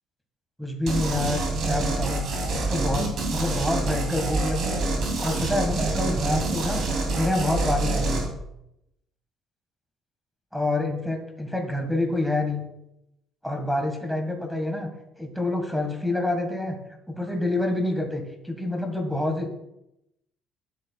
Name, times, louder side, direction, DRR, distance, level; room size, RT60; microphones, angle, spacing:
voice 1, 0.6-4.9 5.2-6.8 7.1-8.3 10.5-12.7 13.4-14.9 15.2-16.8 17.1-19.5, left 1 dB, ahead, 4 dB, 1.4 m, -27 dB
sound 1, 0.9-8.3, right 2 dB, 50° right, 2.5 m, -26 dB
12.5 x 9.9 x 2.2 m, 0.83 s
cardioid pair, 175°, 0 cm